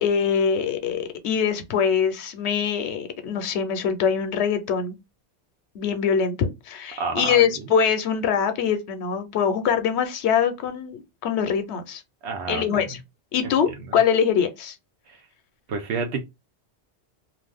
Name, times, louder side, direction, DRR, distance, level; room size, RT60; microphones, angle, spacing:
voice 1, 0.0-5.0 5.7-12.0 12.5-13.0 13.3-14.8, left 7 dB, 80° left, 0.9 m, -23 dB
voice 2, 7.0-7.5 12.2-12.9 15.1-15.2 15.7-16.2, right 4 dB, 75° right, 0.8 m, -29 dB
2.5 x 2.4 x 3.4 m
omnidirectional pair, 1.1 m